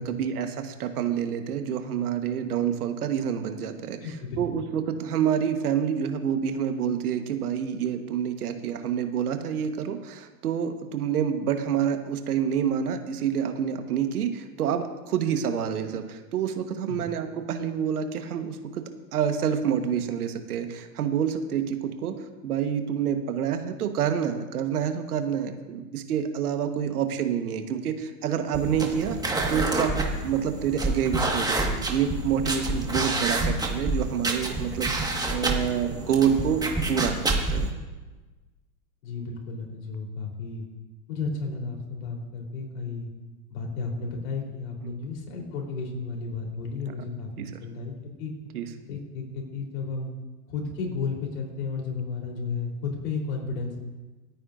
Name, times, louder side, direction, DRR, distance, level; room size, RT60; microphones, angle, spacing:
voice 1, 0.0-4.0 4.4-18.8 19.1-22.1 22.4-29.2 29.5-36.6 36.9-37.7 44.8-44.9 47.4-47.5 48.5-48.6, right 8 dB, 75° right, 7 dB, 1.5 m, -28 dB
voice 2, 4.0-4.4 16.9-17.1 39.0-40.7 41.1-43.1 43.5-47.3 47.6-48.3 48.8-50.1 50.5-53.8, left 4 dB, 60° left, 0 dB, 4.0 m, -33 dB
sound 1, 28.5-37.7, right 2 dB, 10° right, 1.7 m, -28 dB
26.5 x 9.3 x 2.6 m, 1.2 s
hypercardioid pair, 110°, 45 cm